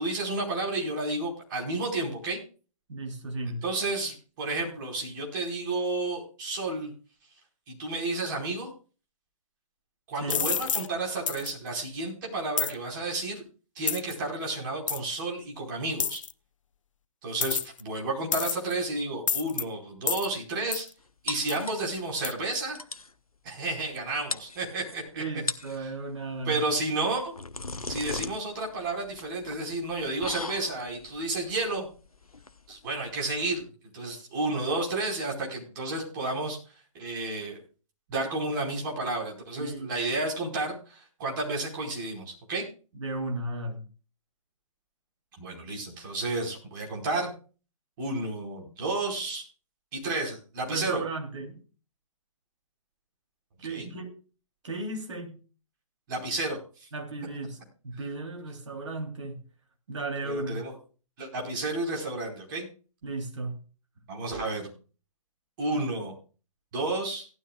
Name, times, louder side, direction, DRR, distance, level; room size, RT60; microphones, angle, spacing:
voice 1, 0.0-2.4 3.6-6.9 7.7-8.7 10.1-13.4 13.7-16.2 17.2-20.9 21.2-22.8 23.4-25.2 26.4-27.4 27.9-31.9 32.7-33.6 33.9-36.6 36.9-37.6 38.1-42.6 45.4-47.3 48.0-49.4 49.9-51.0 53.7-53.9 56.1-56.9 60.2-60.7 61.2-62.7 64.1-64.7 65.6-66.1 66.7-67.3, right 2 dB, 35° right, 0 dB, 4.9 m, -31 dB
voice 2, 2.9-3.6 10.1-10.4 25.1-26.6 39.6-39.9 42.9-43.8 50.7-51.6 53.6-54.1 54.6-55.4 56.9-59.4 59.9-60.6 63.0-63.6 65.7-65.8, right 2 dB, 55° right, 2 dB, 3.4 m, -35 dB
sound 1, 10.3-10.9 11.3-11.5 12.6-12.7 13.9-14.1 14.9-15.0 16.0-16.3 17.4-17.8 18.3-18.7 19.3-19.6 20.1-20.3 20.7-20.9 21.5-21.6 22.2-22.3, left 7 dB, 60° left, 0.6 m, -28 dB
sound 2, 21.3-22.2 22.5-22.6 22.8-23.1 24.0-24.1 24.3-25.0 25.3-25.8 27.0-33.6, left 3 dB, 80° left, 0.9 m, -38 dB
17.5 x 12.0 x 2.4 m, 0.36 s
figure-of-eight pair, 125°, 18 cm